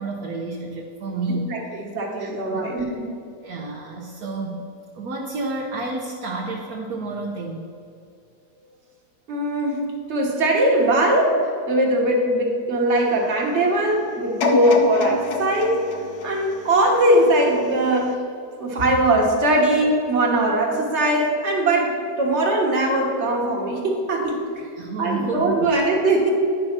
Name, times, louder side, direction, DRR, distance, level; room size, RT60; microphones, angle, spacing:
voice 1, 0.0-1.8 2.2-2.7 3.4-4.6 4.9-7.6 24.7-25.8, right 3 dB, 70° right, -2 dB, 1.3 m, -30 dB
voice 2, 1.5-3.0 9.3-15.8 16.2-18.2 18.6-24.7 25.0-26.3, right 1 dB, 45° right, 0 dB, 1.7 m, -20 dB
sound 1, 14.4-17.5 18.0-18.1, left 4 dB, 75° left, 1.4 m, -26 dB
10.5 x 5.4 x 6.0 m, 2.5 s
omnidirectional pair, 1.7 m